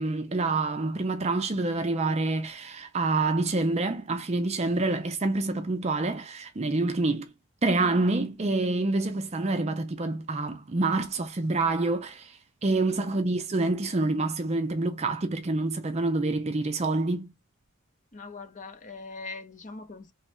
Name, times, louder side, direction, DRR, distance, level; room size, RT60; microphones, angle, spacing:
voice 1, 0.0-7.3 7.6-17.3, right 2 dB, 30° right, 0.4 m, -27 dB
voice 2, 18.1-20.1, left 3 dB, 35° left, 0.7 m, -42 dB
3.1 x 2.3 x 4.2 m
head